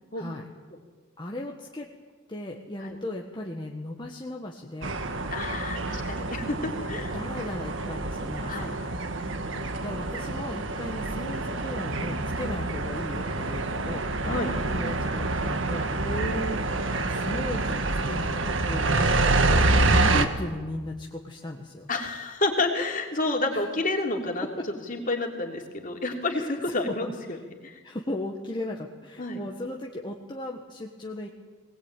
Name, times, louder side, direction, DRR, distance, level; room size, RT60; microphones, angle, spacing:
voice 1, 0.1-0.5 1.2-1.9 2.3-5.0 7.1-8.9 9.8-15.9 17.0-21.9 23.5-23.6 24.6-24.7 26.3-27.4 27.8-31.3, left 1 dB, 20° left, 0 dB, 1.5 m, -36 dB
sound 1, 4.8-20.3, right 2 dB, 65° right, 1.6 m, -27 dB
voice 2, 5.3-7.2 8.5-8.7 9.2-9.6 14.2-14.5 16.0-16.6 19.7-19.9 21.9-24.5 24.9-27.1 27.6-27.8 29.2-29.4, left 2 dB, 40° left, 2 dB, 3.2 m, -30 dB
20.5 x 19.5 x 9.1 m, 1.4 s
head